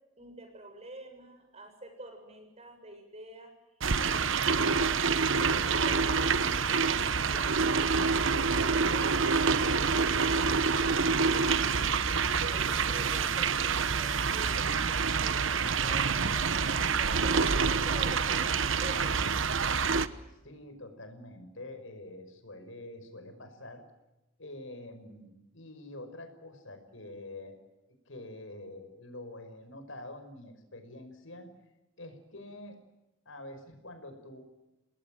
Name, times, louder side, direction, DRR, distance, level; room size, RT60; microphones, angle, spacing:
voice 1, 0.2-3.5 4.0-8.1 12.4-15.5 15.8-19.3, right 1 dB, 30° right, 5 dB, 6.9 m, -47 dB
sound 1, 3.8-20.1, right 5 dB, 70° right, 1.1 m, -27 dB
voice 2, 20.3-23.8 24.4-27.6 28.1-31.5 32.0-32.8 33.3-34.4, left 1 dB, 70° left, 7 dB, 5.6 m, -46 dB
29.0 x 20.0 x 7.6 m, 0.99 s
head